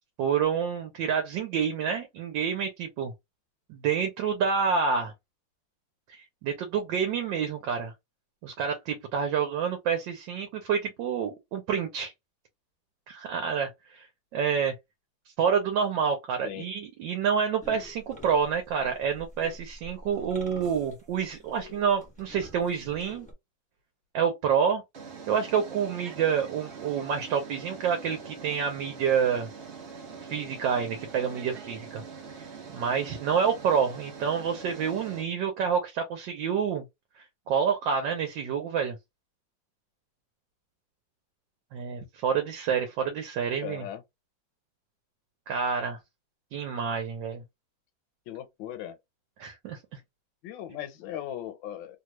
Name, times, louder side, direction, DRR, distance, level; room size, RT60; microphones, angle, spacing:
voice 1, 0.2-3.1 3.7-5.1 6.1-7.9 8.4-12.1 13.1-14.1 14.3-14.8 15.4-23.3 24.1-24.8 25.3-29.5 30.3-32.0 32.4-36.8 37.5-39.0 41.7-43.8 45.5-46.0 46.5-47.4 49.4-50.0, right 7 dB, 75° right, 1.3 m, -28 dB
sound 1, 17.6-23.3, left 1 dB, 5° left, 0.7 m, -48 dB
sound 2, 20.6-21.1 22.7-22.8 24.9-35.2, right 5 dB, 50° right, 0.8 m, -44 dB
voice 2, 43.6-44.0 48.3-49.0 50.4-52.0, left 11 dB, 80° left, 1.4 m, -38 dB
3.2 x 2.3 x 3.0 m
omnidirectional pair, 2.1 m